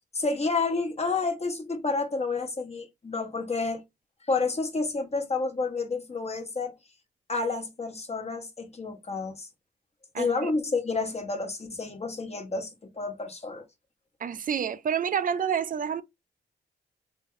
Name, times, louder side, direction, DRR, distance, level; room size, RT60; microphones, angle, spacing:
voice 1, 0.1-3.8 4.2-6.7 7.3-9.5 10.2-12.7 13.0-13.6, left 3 dB, 35° left, 1.1 m, -30 dB
voice 2, 10.1-10.5 14.2-16.0, right 7 dB, 45° right, 0.4 m, -28 dB
3.4 x 2.1 x 3.1 m
cardioid pair, 65°, 19 cm